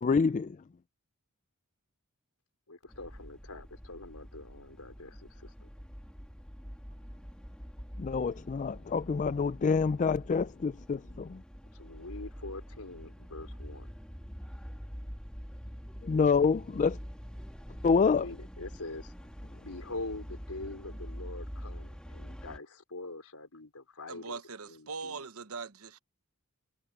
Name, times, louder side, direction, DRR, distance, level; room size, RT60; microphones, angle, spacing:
voice 1, 0.0-0.6 8.0-11.4 16.0-17.0 17.8-18.3, left 5 dB, 35° left, 0.3 m, -27 dB
voice 2, 2.7-5.7 11.7-13.9 17.9-19.1 19.6-24.4 24.7-25.3, left 2 dB, 90° left, 4.5 m, -44 dB
sound 1, 2.9-22.6, equal, 5° left, 1.6 m, -45 dB
voice 3, 24.1-26.0, right 4 dB, 75° right, 1.1 m, -41 dB
head